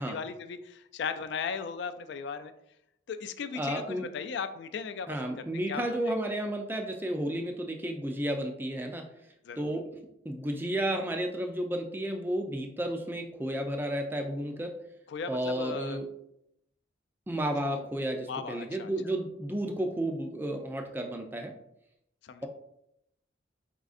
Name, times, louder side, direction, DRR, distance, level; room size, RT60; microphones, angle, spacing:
voice 1, 0.0-2.5 3.1-6.1 9.4-9.7 15.1-16.0 17.6-17.8 18.3-18.9 22.2-22.5, left 5 dB, 65° left, 10 dB, 0.3 m, -37 dB
voice 2, 3.6-4.1 5.1-9.1 9.6-9.9 10.2-14.7 15.3-16.1 17.3-21.5, right 1 dB, 10° right, 3 dB, 0.4 m, -32 dB
4.2 x 3.7 x 2.4 m, 0.79 s
head